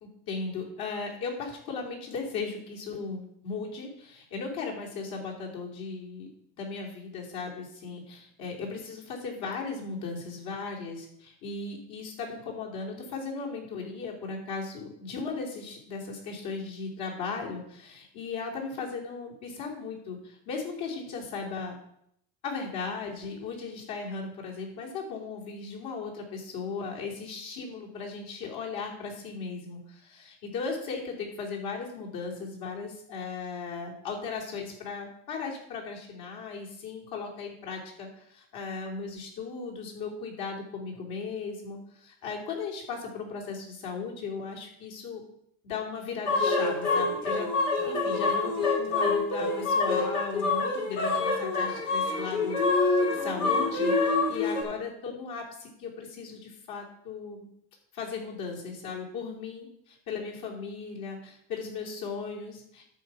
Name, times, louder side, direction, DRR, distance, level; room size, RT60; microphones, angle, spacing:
voice 1, 0.3-6.3 6.5-21.8 22.4-45.2 45.6-47.5 47.8-57.5 57.9-62.8, left 4 dB, 55° left, -1 dB, 3.1 m, -37 dB
sound 1, 46.3-54.6, left 3 dB, 85° left, 2.6 m, -26 dB
12.5 x 4.8 x 5.6 m, 0.72 s
supercardioid pair, 120°, 44 cm